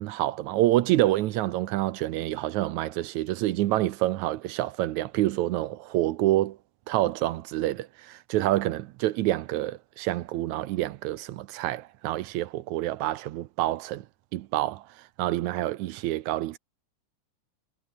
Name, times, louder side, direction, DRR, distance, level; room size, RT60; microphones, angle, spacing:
voice 1, 0.0-6.6 6.9-14.1 14.3-14.9 15.2-16.6, right 15 dB, 75° right, 2.0 m, -27 dB
omnidirectional pair, 3.7 m